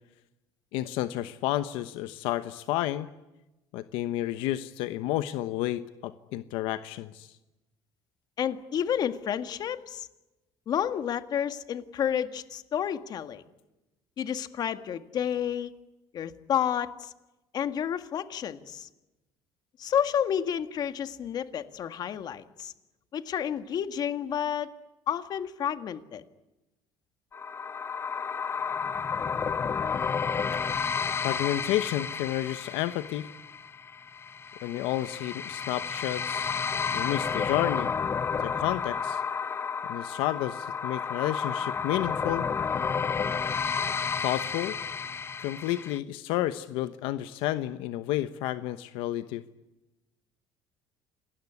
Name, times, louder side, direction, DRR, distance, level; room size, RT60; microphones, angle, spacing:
voice 1, 0.7-3.1 3.7-7.3 31.2-33.3 34.6-36.6 36.9-37.9 38.4-39.2 39.9-42.5 44.2-44.7 45.4-49.4, left 14 dB, 85° left, 11 dB, 1.0 m, -31 dB
voice 2, 8.4-10.1 10.7-13.4 14.2-15.7 16.1-17.1 17.5-18.9 19.8-22.7 23.1-24.7 25.1-26.2, left 9 dB, 50° left, 10 dB, 1.8 m, -30 dB
sound 1, 27.3-46.0, left 6 dB, 30° left, 0.9 m, -31 dB
27.5 x 20.0 x 9.8 m, 1.0 s
cardioid pair, 110°, 9 cm